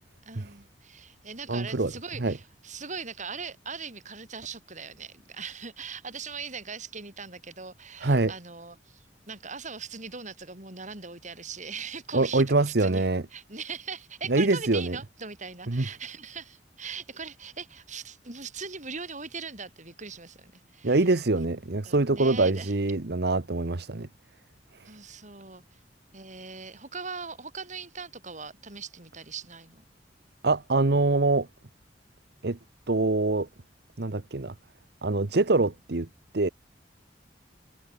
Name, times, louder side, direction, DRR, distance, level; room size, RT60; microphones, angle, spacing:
voice 1, 0.2-13.1 13.3-21.0 21.8-22.7 24.8-25.8 26.1-29.8, right 5 dB, 45° right, 6.6 m, -40 dB
voice 2, 1.5-1.9 2.2-2.3 8.0-8.3 12.1-13.2 14.3-15.0 15.7-15.9 20.8-24.1 30.4-31.5 32.4-32.6 32.9-33.5 34.0-34.5 35.0-36.1 36.3-36.5, right 2 dB, 65° right, 1.0 m, -24 dB
head